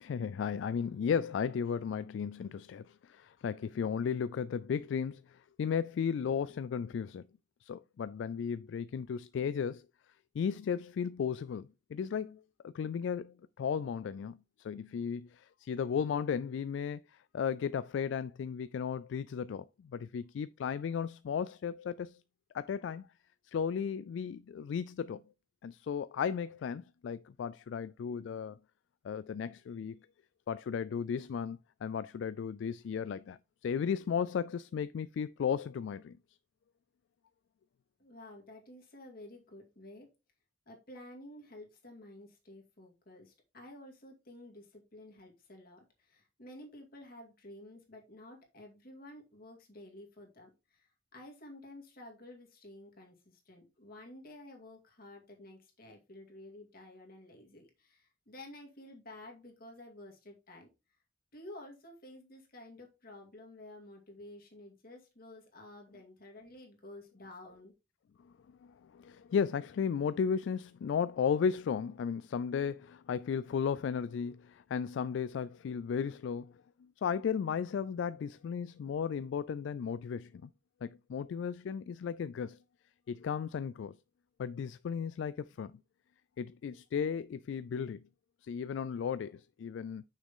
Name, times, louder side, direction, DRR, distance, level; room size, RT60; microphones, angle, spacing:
voice 1, 0.0-7.2 7.6-9.8 10.3-22.2 22.5-23.1 23.5-25.2 25.6-28.6 29.0-30.0 30.5-36.2 68.2-68.3 68.6-80.5 80.8-82.6 83.1-84.0 84.4-85.8 86.4-88.0 88.4-90.0, left 7 dB, 70° left, 0.3 m, -35 dB
voice 2, 38.0-40.1 40.7-60.7 61.3-67.7, left 1 dB, 55° left, 2.4 m, -52 dB
6.4 x 6.2 x 3.7 m
head